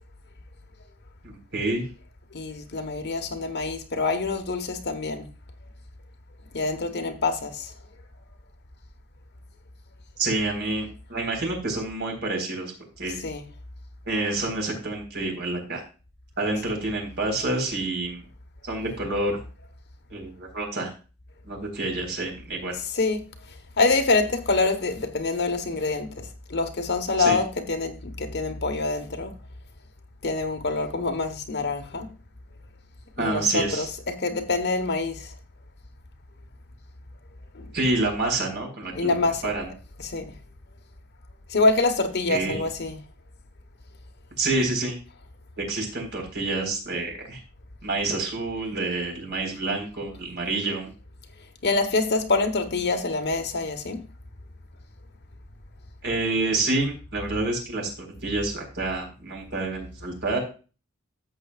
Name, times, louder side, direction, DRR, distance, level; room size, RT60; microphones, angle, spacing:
voice 1, 1.2-1.8 10.2-12.7 13.0-13.2 14.1-15.8 16.4-18.2 18.6-19.4 20.1-20.9 21.4-22.7 27.2-27.4 33.2-33.9 37.7-39.1 39.4-39.7 42.3-42.6 44.4-45.0 45.6-47.4 47.8-50.9 56.0-60.4, right 2 dB, 55° right, 4.2 m, -28 dB
voice 2, 2.3-5.3 6.5-7.7 13.2-13.4 22.9-23.2 23.8-29.4 30.2-32.1 33.2-35.3 37.5-37.7 38.9-39.5 40.0-40.3 41.5-43.0 51.6-54.0, left 3 dB, 50° left, 1.2 m, -26 dB
13.5 x 7.8 x 2.4 m
head